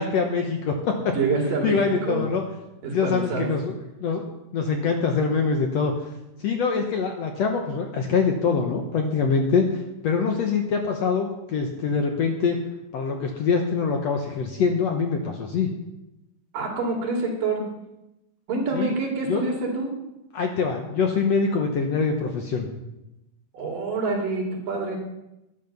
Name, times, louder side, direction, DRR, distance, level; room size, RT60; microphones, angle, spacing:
voice 1, 0.0-1.2 1.6-2.4 2.9-4.2 4.5-5.9 6.4-12.6 12.9-15.7 18.7-18.9 19.3-19.5 20.3-22.7, left 5 dB, 65° left, 3 dB, 1.8 m, -24 dB
voice 2, 1.1-1.8 2.0-2.2 2.8-3.5 16.5-17.6 18.5-19.9 23.5-25.0, right 3 dB, 70° right, 0 dB, 4.3 m, -26 dB
11.5 x 11.0 x 6.6 m, 0.94 s
omnidirectional pair, 4.0 m